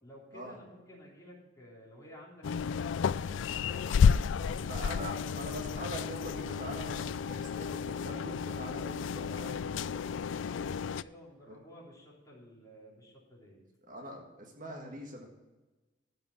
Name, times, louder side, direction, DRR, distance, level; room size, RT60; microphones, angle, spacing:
voice 1, 0.0-4.8 10.4-13.7, equal, 20° left, -4 dB, 3.5 m, -53 dB
sound 1, 2.4-11.0, left 6 dB, 75° left, 0.3 m, -31 dB
voice 2, 4.7-10.0 13.9-15.3, equal, 45° right, 1 dB, 1.7 m, -43 dB
13.5 x 5.4 x 7.2 m, 1.1 s
head